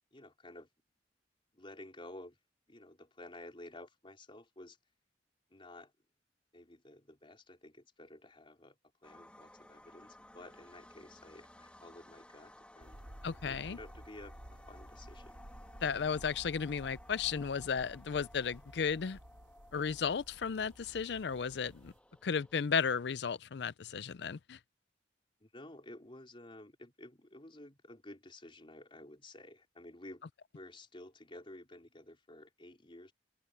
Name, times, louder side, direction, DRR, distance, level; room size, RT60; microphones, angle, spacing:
voice 1, 0.1-0.7 1.5-2.4 2.7-4.8 5.5-5.9 6.5-8.8 9.0-13.0 13.4-15.4 25.4-30.2 30.5-33.1, left 1 dB, 30° left, 4.1 m, -52 dB
sound 1, 9.0-22.6, left 1 dB, 5° left, 1.7 m, -58 dB
sound 2, 12.8-22.0, equal, 80° right, 3.5 m, -54 dB
voice 2, 13.2-13.8 15.8-19.2 19.7-21.9 22.2-24.6, left 6 dB, 70° left, 0.5 m, -34 dB
open air
head